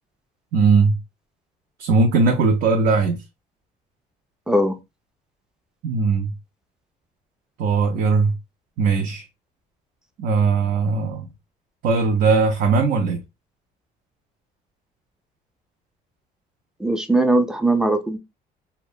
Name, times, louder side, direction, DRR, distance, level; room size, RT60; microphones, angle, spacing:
voice 1, 0.5-1.0 1.8-3.2 5.8-6.3 7.6-8.3 8.8-9.2 10.2-11.3 11.8-13.2, right 4 dB, 65° right, 0.5 m, -19 dB
voice 2, 4.5-4.8 16.8-18.2, right 1 dB, 5° right, 0.4 m, -19 dB
2.7 x 2.1 x 2.3 m
cardioid pair, 110°, 17 cm